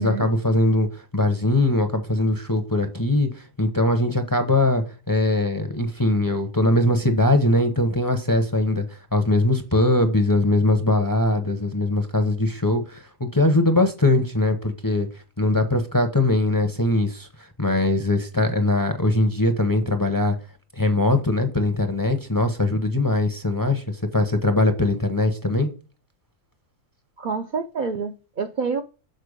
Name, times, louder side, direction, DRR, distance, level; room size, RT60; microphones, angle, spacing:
voice 1, 0.0-8.9 9.1-15.1 15.4-17.3 17.6-20.4 20.7-25.7, left 2 dB, 20° left, 0.6 m, -21 dB
voice 2, 27.2-28.8, right 5 dB, 60° right, 0.5 m, -27 dB
6.7 x 4.4 x 5.0 m
omnidirectional pair, 1.4 m